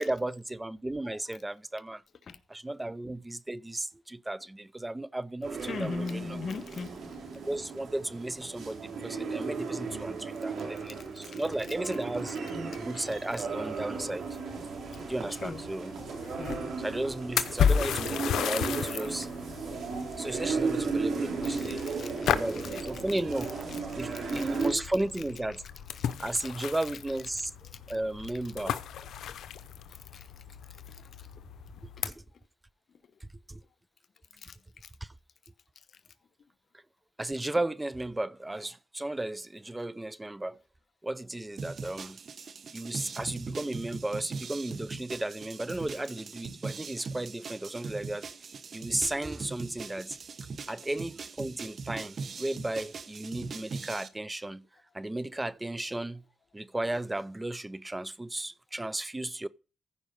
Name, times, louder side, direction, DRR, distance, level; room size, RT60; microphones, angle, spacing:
voice 1, 0.0-2.0 2.5-6.3 7.5-12.4 12.8-14.3 15.1-15.9 16.8-19.3 20.2-22.0 22.3-23.6 23.9-25.6 26.2-27.5 27.9-28.8 32.0-32.1 33.2-33.6 35.0-35.1 37.2-40.6 41.0-42.2 42.7-48.3 48.7-50.2 50.7-54.6 54.9-56.2 56.5-59.5, right 1 dB, 15° right, 0.5 m, -34 dB
voice 2, 1.0-1.4 2.3-2.4 5.6-6.9 11.2-11.4 12.7-13.0 14.9-15.0 15.3-15.6 16.4-16.6 21.4-23.0 23.7-24.7 25.9-26.5 27.7-27.8 29.9-30.3 30.6-31.5 32.1-32.2 34.4-34.9 35.9-36.0 50.7-50.8, left 4 dB, 65° left, 0.9 m, -42 dB
sound 1, 5.4-24.7, right 4 dB, 80° right, 3.2 m, -35 dB
sound 2, 13.0-32.1, left 8 dB, 90° left, 0.7 m, -35 dB
sound 3, 41.6-54.1, right 4 dB, 60° right, 0.9 m, -41 dB
15.0 x 5.1 x 5.4 m
cardioid pair, 65°, 0 cm